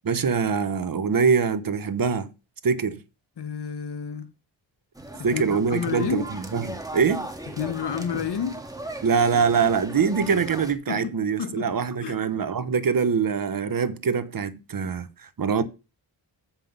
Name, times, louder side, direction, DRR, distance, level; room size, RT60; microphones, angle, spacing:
voice 1, 0.0-2.3 2.6-3.0 5.2-7.3 9.0-15.6, right 6 dB, 45° right, 1.0 m, -24 dB
voice 2, 3.4-4.3 5.1-6.3 7.5-8.7 10.9-11.1 11.4-11.7 12.0-12.2, left 7 dB, 60° left, 1.0 m, -30 dB
sound 1, 5.0-10.7, right 1 dB, 10° right, 1.6 m, -38 dB
7.4 x 5.8 x 5.3 m
cardioid pair, 65°, 46 cm